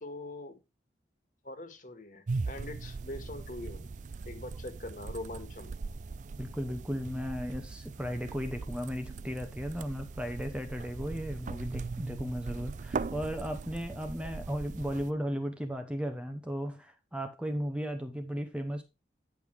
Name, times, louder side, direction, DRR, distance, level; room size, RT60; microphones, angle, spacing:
voice 1, 0.0-0.6 1.4-3.9 4.3-5.8, left 1 dB, 45° left, 1.8 m, -42 dB
sound 1, 2.3-15.1, right 4 dB, 45° right, 0.4 m, -40 dB
voice 2, 6.4-18.8, equal, 5° right, 0.9 m, -35 dB
10.0 x 5.6 x 4.6 m
head